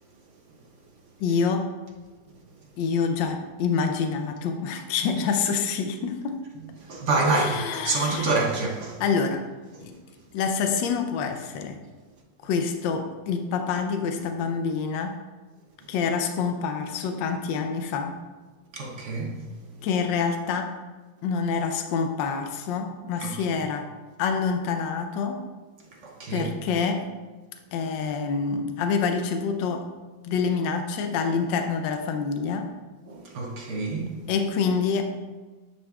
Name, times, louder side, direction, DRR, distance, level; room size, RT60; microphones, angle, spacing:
voice 1, 1.2-1.8 2.8-6.4 7.3-8.3 9.0-9.5 9.8-10.0 10.3-11.8 12.4-15.2 15.9-18.2 19.8-20.7 21.2-23.9 24.2-25.4 26.3-27.1 27.7-29.9 30.2-32.7 34.3-35.0, left 5 dB, 80° left, 1.3 m, -27 dB
voice 2, 6.8-9.0 9.7-9.9 18.7-19.4 23.2-23.3 26.0-26.5 33.1-34.2, right 3 dB, 55° right, 0.8 m, -27 dB
9.9 x 5.1 x 2.3 m
omnidirectional pair, 2.0 m